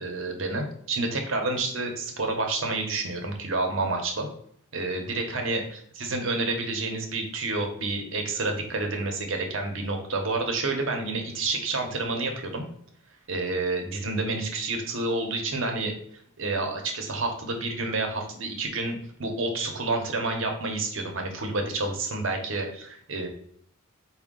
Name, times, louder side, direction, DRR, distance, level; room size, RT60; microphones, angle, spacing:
voice 1, 0.0-4.3 4.7-5.6 5.9-12.6 13.3-15.9 16.4-23.3, right 2 dB, 65° right, 3 dB, 0.8 m, -29 dB
4.8 x 2.3 x 3.6 m, 0.66 s
head